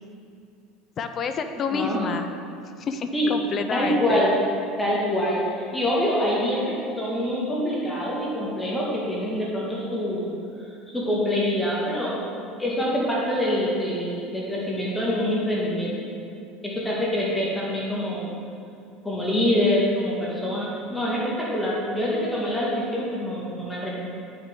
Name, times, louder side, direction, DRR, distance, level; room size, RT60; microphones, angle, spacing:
voice 1, 1.0-2.3 2.8-4.2, left 5 dB, 40° left, 8 dB, 0.5 m, -29 dB
voice 2, 1.7-2.0 3.1-3.3 3.7-4.3 4.8-10.3 10.9-15.9 16.6-18.3 19.0-24.0, equal, 10° left, -5 dB, 1.9 m, -25 dB
9.6 x 5.8 x 3.7 m, 2.4 s
supercardioid pair, 95°, 0 cm